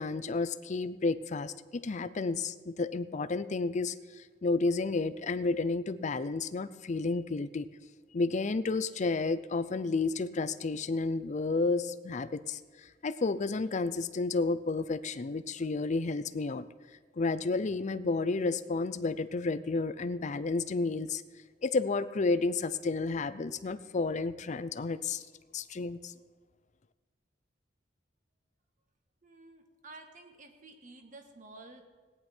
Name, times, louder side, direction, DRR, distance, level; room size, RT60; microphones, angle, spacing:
voice 1, 0.0-3.9 4.4-7.7 8.1-12.6 13.0-16.6 17.2-21.2 21.6-25.2 25.5-26.1, left 3 dB, 40° left, 13 dB, 0.5 m, -31 dB
voice 2, 29.2-31.8, right 2 dB, 45° right, 4 dB, 1.5 m, -51 dB
17.5 x 9.9 x 4.4 m, 1.4 s
head